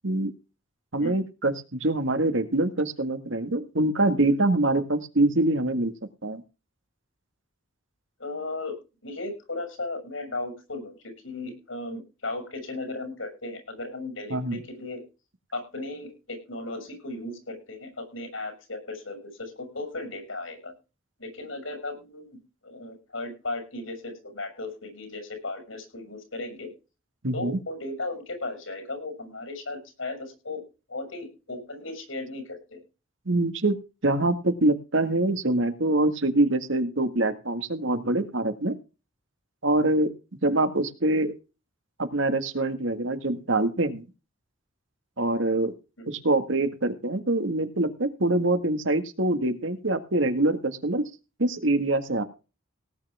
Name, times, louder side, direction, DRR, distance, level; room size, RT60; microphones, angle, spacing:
voice 1, 0.9-5.9 6.2-6.4 14.3-14.6 27.2-27.6 33.3-33.8 34.0-38.8 39.6-40.1 40.4-41.3 42.0-44.0 45.2-45.7 46.1-51.0 51.4-52.2, right 2 dB, 70° right, 8 dB, 1.9 m, -24 dB
voice 2, 8.2-8.7 9.0-10.9 11.2-15.0 15.5-20.7 21.2-22.3 22.6-26.7 27.3-30.6 30.9-32.8 40.5-40.6 46.0-46.1, left 2 dB, 80° left, 6 dB, 7.0 m, -36 dB
18.0 x 9.5 x 3.6 m, 0.31 s
head